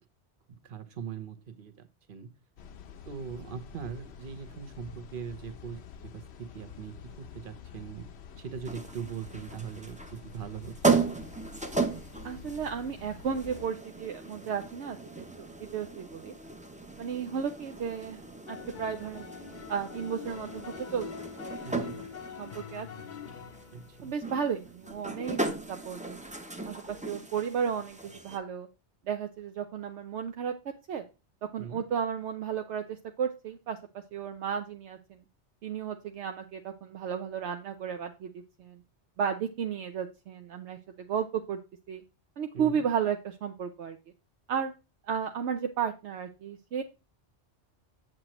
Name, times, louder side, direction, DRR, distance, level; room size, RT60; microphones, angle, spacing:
voice 1, 0.5-2.3 3.1-8.1 8.4-11.0 21.6-22.0 23.7-24.1 31.6-31.8 42.5-42.8, right 7 dB, 55° right, 8 dB, 1.0 m, -41 dB
sound 1, 2.6-13.7, left 7 dB, 75° left, 0.9 m, -48 dB
sound 2, 8.6-28.4, right 4 dB, 10° right, 0.5 m, -36 dB
voice 2, 12.2-16.3 17.0-18.2 18.5-19.3 19.7-22.1 22.4-22.9 24.0-26.2 26.7-28.7 29.1-31.0 31.4-33.8 34.1-35.2 35.6-38.3 38.6-38.8 39.2-41.6 41.9-42.0 42.4-44.0 44.5-44.7 45.1-46.8, right 7 dB, 80° right, 5 dB, 0.9 m, -34 dB
sound 3, 18.5-25.4, left 7 dB, 50° left, 0.7 m, -45 dB
7.6 x 7.5 x 2.9 m, 0.28 s
omnidirectional pair, 1.1 m